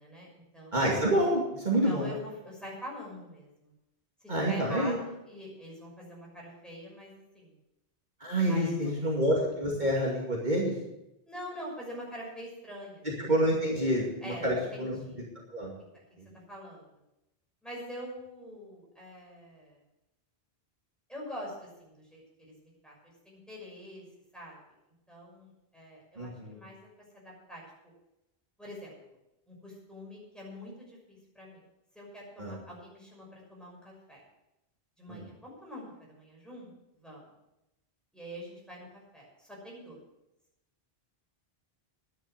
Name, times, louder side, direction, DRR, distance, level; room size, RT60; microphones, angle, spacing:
voice 1, 0.0-0.9 1.6-3.7 4.2-7.5 8.5-9.0 11.3-13.3 13.8-13.9 14.2-15.3 16.5-16.8 17.6-19.8 21.1-22.5 22.8-22.9 23.2-24.0 24.3-24.6 25.1-26.8 27.1-27.6 28.6-28.9 29.5-31.6 31.9-34.2 35.0-36.7 37.0-37.2 38.1-40.0, equal, ahead, -4 dB, 6.1 m, -45 dB
voice 2, 0.7-2.1 4.3-5.0 8.2-10.7 13.2-15.0 15.5-15.7 26.2-26.6 32.4-32.6 35.1-35.2, right 1 dB, 45° right, -3 dB, 2.5 m, -28 dB
12.5 x 10.0 x 6.6 m, 0.91 s
omnidirectional pair, 1.0 m